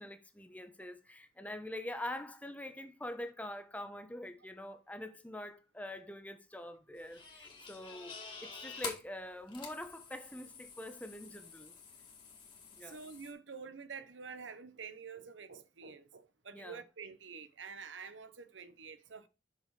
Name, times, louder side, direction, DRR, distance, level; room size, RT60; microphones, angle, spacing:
voice 1, 0.0-11.7 12.7-13.0 16.5-16.8, left 1 dB, 10° left, 0.8 m, -45 dB
sound 1, 7.0-13.3, left 5 dB, 25° left, 2.0 m, -48 dB
voice 2, 12.8-19.3, right 5 dB, 85° right, 0.9 m, -48 dB
6.7 x 6.3 x 4.8 m
head